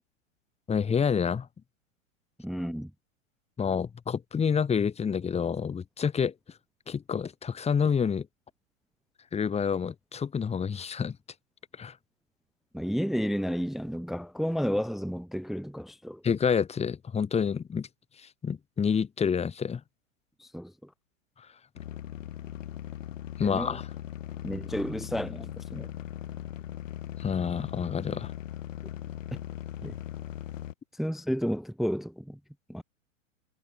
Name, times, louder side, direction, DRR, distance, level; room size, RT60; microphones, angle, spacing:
voice 1, 0.7-1.5 3.6-6.3 6.9-8.3 9.3-11.2 11.8-12.0 16.2-17.9 18.2-19.8 21.4-21.5 23.4-23.8 27.2-28.3, left 6 dB, 15° left, 3.1 m, -28 dB
voice 2, 2.4-2.9 12.7-16.2 20.4-20.9 23.4-23.8 24.4-25.9 29.8-30.0 30.9-32.4 32.7-32.8, equal, ahead, 0.7 m, -32 dB
sound 1, 21.7-30.7, left 11 dB, 70° left, 2.8 m, -39 dB
hypercardioid pair, 115°, 40 cm